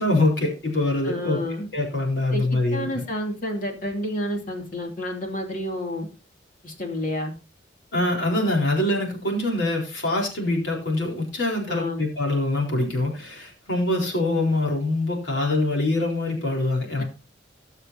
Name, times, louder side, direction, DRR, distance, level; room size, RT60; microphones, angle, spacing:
voice 1, 0.0-1.4 1.7-3.0 7.9-17.0, left 2 dB, 80° left, 0 dB, 4.1 m, -24 dB
voice 2, 1.0-1.7 2.3-6.1 6.6-7.3 11.7-12.0 17.0-17.1, left 1 dB, 50° left, 2 dB, 2.8 m, -30 dB
20.0 x 6.6 x 2.9 m, 0.31 s
head